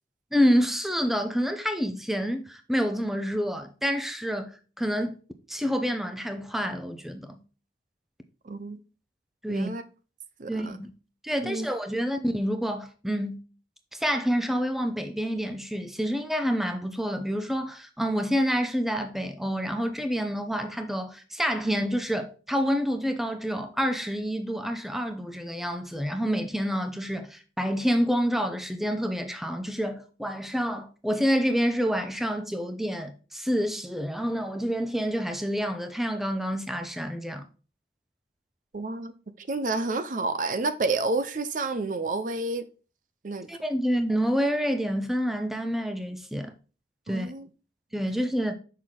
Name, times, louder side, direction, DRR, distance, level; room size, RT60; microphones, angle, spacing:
voice 1, 0.3-5.2 5.5-7.4 9.4-9.7 10.5-10.9 11.2-13.4 13.9-37.4 43.5-46.5 47.1-47.3 47.9-48.5, equal, ahead, 0.6 m, -28 dB
voice 2, 8.4-8.8 9.5-9.8 10.4-10.7 11.4-11.7 38.7-42.6 43.2-43.5 47.1-47.5, right 3 dB, 45° right, 0.5 m, -30 dB
6.5 x 6.0 x 3.7 m
head